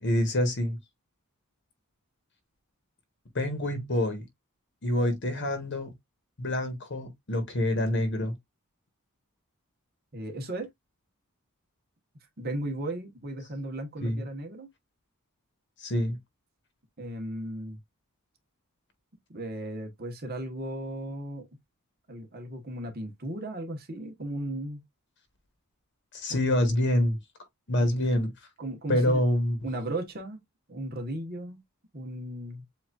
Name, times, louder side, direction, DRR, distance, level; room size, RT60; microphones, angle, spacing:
voice 1, 0.0-0.8 3.3-4.2 4.8-5.9 6.4-8.3 14.0-14.2 15.8-16.2 26.1-27.2 27.7-28.3 28.9-29.6, left 1 dB, 50° left, 1.2 m, -26 dB
voice 2, 10.1-10.7 12.4-14.7 17.0-17.8 19.3-21.5 22.1-24.8 26.3-26.4 27.8-28.0 28.6-29.2 29.6-30.4 30.7-31.6 31.9-32.6, right 1 dB, 45° right, 1.2 m, -36 dB
7.6 x 2.6 x 2.4 m
head